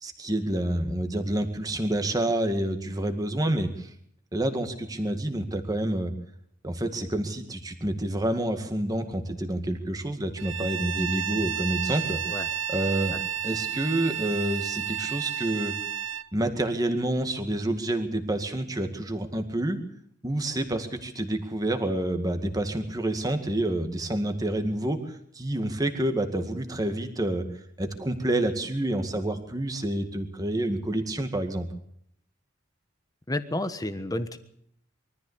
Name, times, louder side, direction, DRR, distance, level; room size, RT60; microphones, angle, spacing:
voice 1, 0.0-3.9 4.3-6.1 6.6-12.4 12.7-13.2 13.4-15.7 16.3-19.8 20.2-27.4 27.8-31.7, right 1 dB, 20° right, 6 dB, 2.1 m, -28 dB
Bowed string instrument, 10.4-16.3, right 9 dB, 85° right, 0.8 m, -31 dB
voice 2, 33.3-34.4, left 1 dB, 20° left, 10 dB, 1.3 m, -31 dB
23.5 x 14.0 x 8.2 m, 0.69 s
head